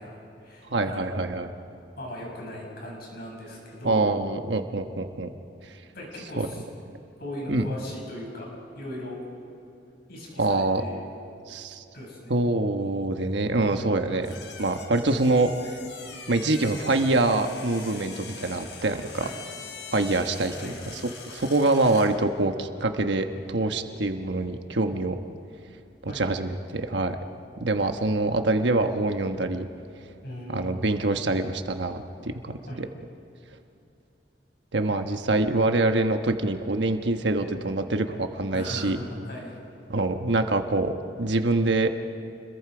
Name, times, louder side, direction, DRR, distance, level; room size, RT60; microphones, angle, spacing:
voice 1, 0.0-1.4 2.0-4.1 5.9-6.6 7.2-9.2 10.1-11.1 11.9-12.3 14.1-14.2 19.2-19.3 20.6-20.8 26.1-26.2 30.2-30.7 32.7-32.8 38.5-39.5, left 1 dB, 60° left, -2 dB, 6.9 m, -39 dB
voice 2, 0.7-1.5 3.8-5.3 6.4-6.5 7.5-7.7 10.4-10.8 11.5-11.8 12.3-14.3 14.6-15.8 16.3-19.3 19.9-21.0 21.3-25.2 26.0-27.2 27.6-29.7 30.5-32.9 34.7-39.0 39.9-41.9, right 2 dB, 80° right, 6 dB, 1.2 m, -25 dB
sound 1, 14.2-22.2, left 5 dB, 90° left, 3.6 m, -43 dB
29.5 x 22.5 x 5.0 m, 2.8 s
head